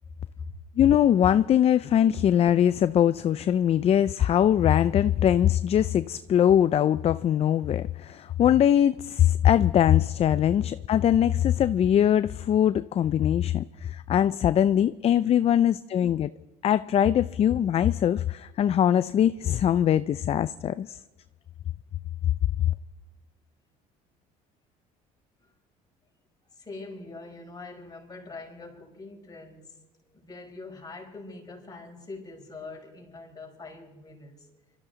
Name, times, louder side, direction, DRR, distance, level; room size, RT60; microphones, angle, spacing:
voice 1, 0.0-0.5 25.4-25.5 26.5-34.5, left 3 dB, 25° left, 5.2 m, -43 dB
voice 2, 0.8-16.3 16.6-21.0, left 10 dB, 40° left, 0.4 m, -22 dB
24.5 x 13.5 x 3.9 m
supercardioid pair, 95°, 15 cm